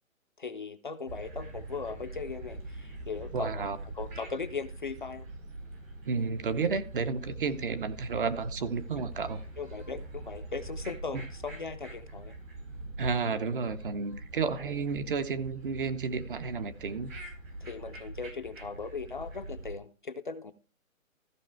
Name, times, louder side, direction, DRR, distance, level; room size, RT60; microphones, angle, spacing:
voice 1, 0.4-5.3 9.6-12.3 14.6-14.7 17.6-20.5, left 4 dB, 40° left, 0.5 m, -38 dB
sound 1, 1.1-19.7, right 2 dB, 70° right, 5.2 m, -43 dB
voice 2, 3.3-3.8 6.1-9.4 13.0-17.1, right 5 dB, 40° right, 0.8 m, -31 dB
14.5 x 5.5 x 4.4 m
hypercardioid pair, 155°, 41 cm